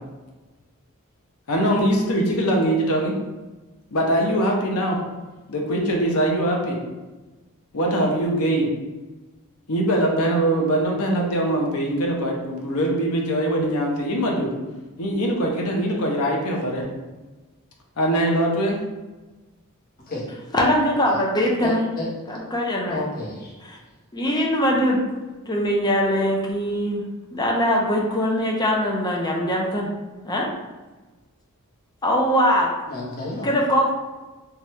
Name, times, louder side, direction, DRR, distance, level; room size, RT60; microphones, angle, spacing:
voice 1, 1.5-3.1 3.9-5.0 5.5-6.8 7.7-8.7 9.7-14.5 15.0-16.8 18.0-18.8, right 1 dB, 75° left, 0 dB, 0.7 m, -22 dB
voice 2, 20.5-21.8 22.3-23.0 24.1-25.0 25.5-27.0 27.3-29.9 30.2-30.5 32.0-32.7 33.4-33.9, equal, 20° left, -1 dB, 0.4 m, -21 dB
voice 3, 21.6-22.1 22.9-23.6 32.9-33.5, left 2 dB, 40° left, -5 dB, 0.9 m, -30 dB
2.9 x 2.3 x 3.1 m, 1.2 s
head